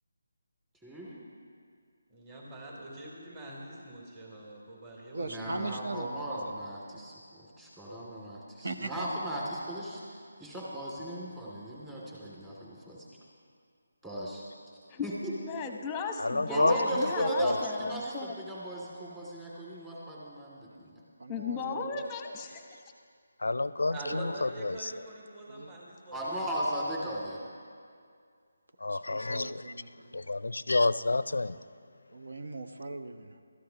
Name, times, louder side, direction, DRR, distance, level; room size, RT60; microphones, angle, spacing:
voice 1, 0.8-1.2 5.2-10.0 10.4-13.1 14.0-14.4 15.0-15.3 16.5-20.9 26.1-27.4, right 1 dB, 10° right, -6 dB, 2.4 m, -36 dB
voice 2, 2.1-5.8 23.9-26.7, right 1 dB, 25° right, -3 dB, 3.4 m, -44 dB
voice 3, 5.1-6.6 8.6-9.2 21.2-22.0 22.7-22.8 25.5-25.7 28.9-29.9 32.1-33.4, right 2 dB, 70° right, 9 dB, 1.0 m, -40 dB
voice 4, 15.4-18.4 21.3-22.8, left 5 dB, 10° left, 4 dB, 0.9 m, -36 dB
voice 5, 16.2-18.0 23.4-24.9 28.8-29.6 30.3-31.6, left 2 dB, 80° left, 16 dB, 0.4 m, -29 dB
21.5 x 13.5 x 2.9 m, 2.2 s
figure-of-eight pair, 160°, 0 cm